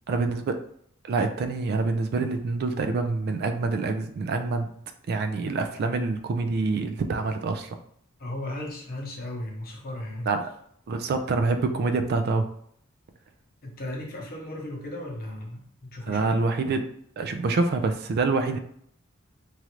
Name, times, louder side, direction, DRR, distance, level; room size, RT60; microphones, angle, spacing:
voice 1, 0.1-0.6 1.0-4.7 5.1-7.8 10.3-10.4 10.9-12.5 16.1-16.8 17.2-18.6, right 3 dB, 50° right, 7 dB, 0.3 m, -26 dB
voice 2, 8.2-10.3 13.6-16.4, left 1 dB, 45° left, 0 dB, 0.8 m, -36 dB
3.1 x 2.4 x 2.9 m, 0.66 s
head